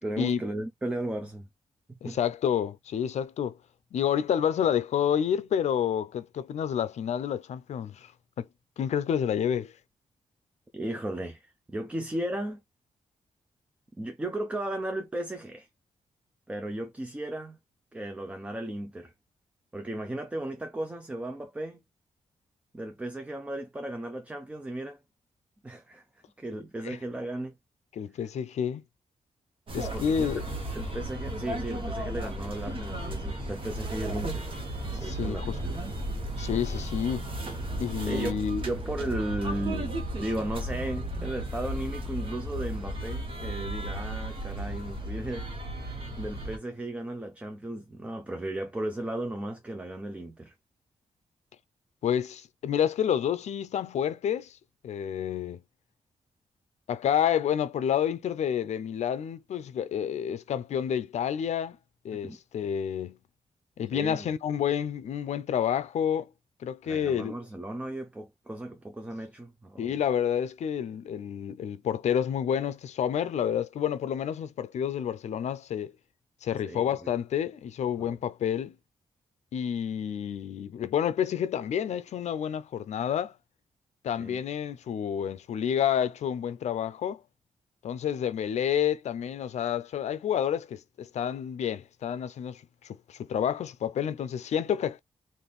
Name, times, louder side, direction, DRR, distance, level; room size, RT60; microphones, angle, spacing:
voice 1, 0.0-1.5 2.0-2.2 10.7-12.6 14.0-15.7 16.5-17.6 17.9-19.1 19.7-21.8 22.7-25.0 25.6-26.0 26.4-27.5 29.9-30.3 30.7-34.5 34.9-35.8 38.0-45.5 45.8-50.5 62.2-62.4 63.9-64.3 66.8-70.0 76.6-77.1 78.0-78.2 84.2-84.4, right 1 dB, 10° right, 0.5 m, -35 dB
voice 2, 2.0-3.6 3.9-8.1 8.4-8.5 8.8-9.7 26.8-27.0 27.9-28.8 29.7-30.4 34.9-35.6 36.4-37.3 37.8-38.6 52.0-54.6 54.8-55.6 56.9-61.8 62.0-63.2 63.8-66.3 66.6-67.4 69.8-75.9 76.4-78.8 79.5-83.3 84.0-87.2 87.8-95.0, left 9 dB, 65° left, 0.5 m, -29 dB
sound 1, 29.7-46.6, right 1 dB, 45° right, 1.1 m, -34 dB
4.0 x 2.6 x 3.4 m
wide cardioid pair, 180°, 12 cm